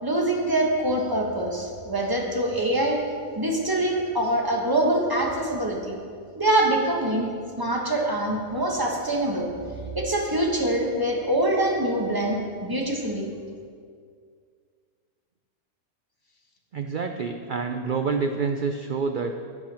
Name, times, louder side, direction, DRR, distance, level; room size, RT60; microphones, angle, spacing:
voice 1, 0.0-3.0 3.3-6.0 6.3-7.3 7.6-9.5 9.9-13.3, right 1 dB, 15° right, -1 dB, 1.3 m, -24 dB
voice 2, 16.7-19.3, right 5 dB, 80° right, 5 dB, 0.4 m, -27 dB
11.5 x 9.4 x 4.4 m, 2.1 s
omnidirectional pair, 1.6 m